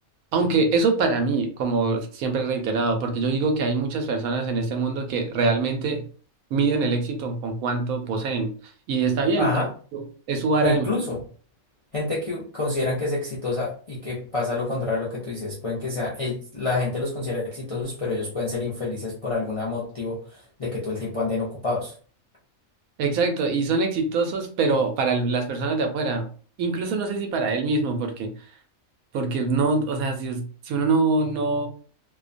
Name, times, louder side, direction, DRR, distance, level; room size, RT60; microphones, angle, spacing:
voice 1, 0.3-6.0 6.5-8.5 8.9-9.5 9.9-10.9 23.0-26.3 26.6-28.3 29.1-31.7, right 3 dB, 85° right, 5 dB, 1.0 m, -24 dB
voice 2, 9.4-9.7 10.6-11.2 11.9-21.9, left 3 dB, 55° left, -7 dB, 0.3 m, -28 dB
2.5 x 2.2 x 2.5 m, 0.42 s
omnidirectional pair, 1.4 m